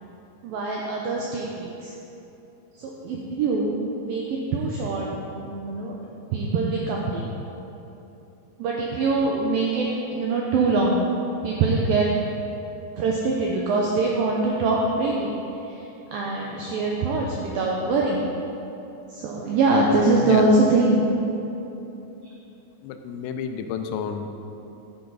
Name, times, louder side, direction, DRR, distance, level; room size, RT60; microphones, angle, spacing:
voice 1, 0.4-1.9 2.8-5.1 5.3-6.0 6.3-7.3 8.6-9.9 10.1-11.0 11.4-12.1 13.0-15.3 16.1-18.3 19.1-21.0, right 3 dB, 85° right, -2 dB, 2.0 m, -23 dB
voice 2, 20.0-20.6 22.8-24.3, left 7 dB, 80° left, 6 dB, 2.8 m, -31 dB
10.0 x 10.0 x 4.0 m, 3.0 s
omnidirectional pair, 5.2 m